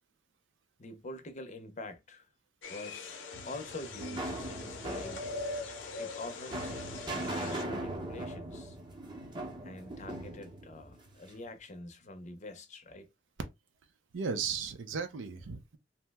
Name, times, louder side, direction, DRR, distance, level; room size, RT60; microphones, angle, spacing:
voice 1, 0.8-2.3 2.7-3.2 3.4-5.2 6.0-8.8 9.6-13.1, left 2 dB, 40° left, 0.6 m, -46 dB
sound 1, 2.6-7.6, left 3 dB, 80° left, 0.7 m, -42 dB
sound 2, 3.3-11.4, right 1 dB, 25° right, 0.7 m, -40 dB
voice 2, 14.1-15.8, right 5 dB, 85° right, 0.5 m, -35 dB
2.8 x 2.0 x 3.3 m
head